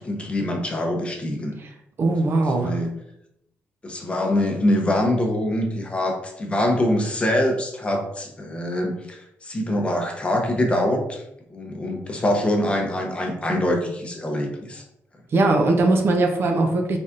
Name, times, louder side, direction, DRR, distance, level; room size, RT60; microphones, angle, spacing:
voice 1, 0.0-1.6 2.3-2.9 3.8-11.2 11.5-14.8, left 1 dB, 25° left, 2 dB, 0.7 m, -24 dB
voice 2, 2.0-2.7 15.3-17.0, right 2 dB, 50° right, 3 dB, 0.6 m, -20 dB
4.0 x 3.4 x 2.5 m, 0.78 s
cardioid pair, 120°, 5 cm